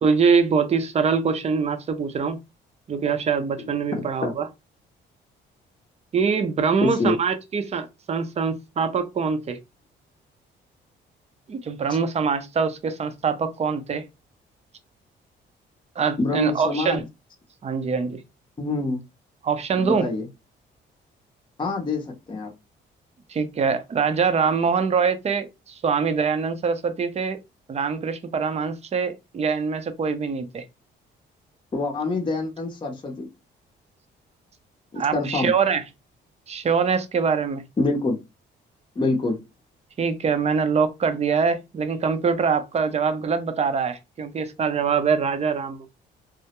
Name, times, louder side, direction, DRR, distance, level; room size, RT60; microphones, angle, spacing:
voice 1, 0.0-2.4 2.9-4.5 6.1-9.6 11.5-14.0 16.0-17.0 17.6-18.2 19.4-20.1 23.3-27.4 27.7-30.7 35.0-35.8 36.5-37.6 40.0-45.9, right 5 dB, 35° right, 0.5 m, -24 dB
voice 2, 6.8-7.2 16.2-17.0 18.6-19.0 19.8-20.2 21.6-22.5 31.7-33.3 34.9-35.5 37.8-38.2 39.0-39.4, left 3 dB, 25° left, 0.6 m, -25 dB
2.2 x 2.0 x 2.9 m
cardioid pair, 90°, 20 cm